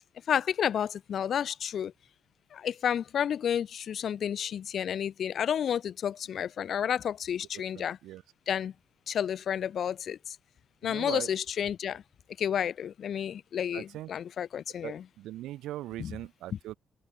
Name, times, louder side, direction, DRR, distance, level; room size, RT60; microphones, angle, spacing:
voice 1, 0.3-1.9 2.5-8.0 8.5-8.7 9.1-10.4 10.8-12.0 12.4-15.0 16.0-16.1, left 9 dB, 60° left, 0.4 m, -31 dB
voice 2, 7.7-8.2 10.8-11.3 13.7-14.1 14.8-16.7, right 15 dB, 90° right, 2.0 m, -40 dB
cardioid pair, 90°, 0 cm